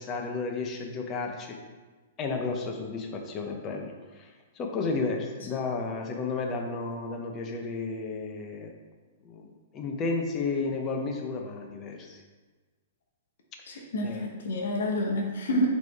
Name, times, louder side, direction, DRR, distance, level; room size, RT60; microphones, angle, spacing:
voice 1, 0.0-1.6 2.2-4.3 4.5-8.7 9.2-12.2 13.7-14.3, left 4 dB, 30° left, 2 dB, 0.7 m, -32 dB
voice 2, 13.6-15.7, left 1 dB, 70° left, -1 dB, 0.9 m, -28 dB
4.0 x 3.2 x 3.5 m, 1.3 s
hypercardioid pair, 125°, 0 cm